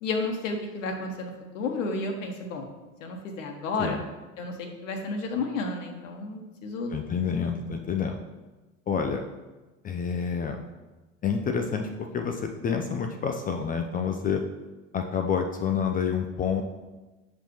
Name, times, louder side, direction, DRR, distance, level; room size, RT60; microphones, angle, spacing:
voice 1, 0.0-2.7 3.0-4.0 4.4-6.9, left 3 dB, 70° left, 3 dB, 1.1 m, -32 dB
voice 2, 6.9-8.2 8.9-9.2 9.8-10.6 11.2-14.4 14.9-16.6, left 6 dB, 20° left, 4 dB, 0.5 m, -28 dB
7.0 x 5.4 x 3.0 m, 1.1 s
hypercardioid pair, 80°, 40 cm